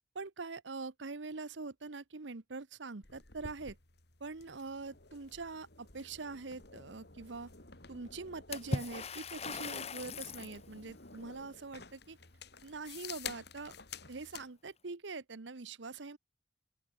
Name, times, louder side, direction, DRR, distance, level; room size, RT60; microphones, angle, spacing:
voice 1, 0.1-3.8 4.2-7.5 7.9-12.2 12.6-13.7 14.1-16.2, right 3 dB, 70° right, 1.0 m, -44 dB
sound 1, 3.0-14.5, left 6 dB, 60° left, 3.6 m, -51 dB
Water / Splash splatter, 8.5-10.6, left 3 dB, 35° left, 1.0 m, -39 dB
open air
head